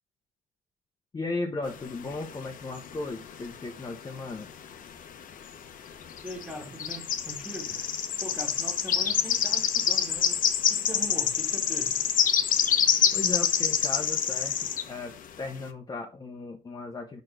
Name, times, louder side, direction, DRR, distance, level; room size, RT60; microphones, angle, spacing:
voice 1, 1.1-4.5 13.1-17.2, left 3 dB, 20° left, 0.9 m, -36 dB
sound 1, 1.7-3.4 3.6-4.9 5.2-5.4 6.0-14.9, left 8 dB, 50° left, 0.9 m, -26 dB
voice 2, 6.2-7.8 8.2-12.0, right 1 dB, 5° right, 2.0 m, -41 dB
5.2 x 4.6 x 6.2 m
cardioid pair, 110°, 17 cm